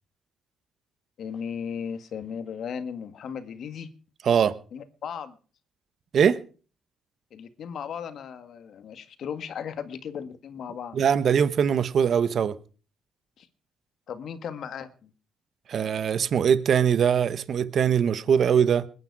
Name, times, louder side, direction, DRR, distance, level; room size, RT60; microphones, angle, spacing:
voice 1, 1.2-3.9 4.7-5.4 7.3-11.0 13.4-13.5 14.1-15.1, left 7 dB, 65° left, 1.9 m, -36 dB
voice 2, 4.2-4.5 6.1-6.4 10.9-12.5 15.7-18.9, right 8 dB, 60° right, 1.1 m, -22 dB
21.5 x 9.8 x 4.8 m
cardioid pair, 90°, 0 cm